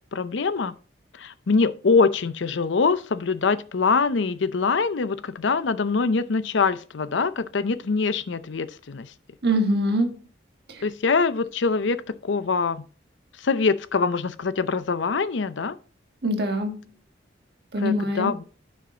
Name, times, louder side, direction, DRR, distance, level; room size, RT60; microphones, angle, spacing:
voice 1, 0.1-0.7 1.1-9.1 10.8-12.9 13.4-15.8 17.8-18.4, left 4 dB, 75° left, 0.6 m, -24 dB
voice 2, 9.4-10.3 10.7-10.8 16.2-16.8 17.7-18.4, equal, 55° right, 1.5 m, -24 dB
10.5 x 6.3 x 2.9 m
head